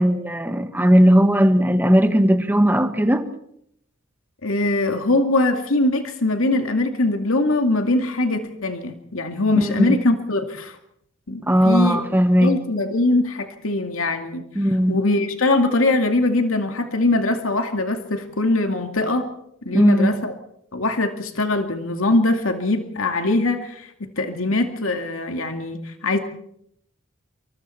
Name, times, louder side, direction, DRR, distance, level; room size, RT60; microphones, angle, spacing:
voice 1, 0.0-3.2 9.5-10.0 11.4-12.6 14.5-15.0 19.7-20.2, equal, 10° right, 1.6 m, -17 dB
voice 2, 4.4-10.8 11.3-12.0 12.4-14.4 14.9-19.3 19.7-20.3 20.7-26.2, left 2 dB, 85° left, 2.3 m, -22 dB
27.5 x 24.5 x 4.5 m
head